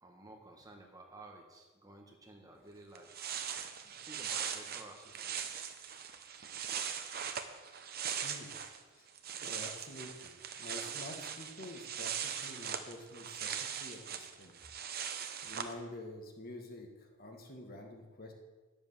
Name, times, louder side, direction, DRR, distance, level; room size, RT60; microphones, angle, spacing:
voice 1, 0.0-3.3 3.9-5.6, right 2 dB, 15° right, 1 dB, 1.4 m, -54 dB
sound 1, 2.7-2.8 2.9-8.8 9.1-15.7, right 8 dB, 50° right, 0.8 m, -40 dB
voice 2, 8.2-8.5 8.9-9.1 9.4-14.5 15.4-18.3, left 1 dB, 45° left, 2 dB, 1.7 m, -48 dB
10.0 x 7.3 x 7.3 m, 1.3 s
head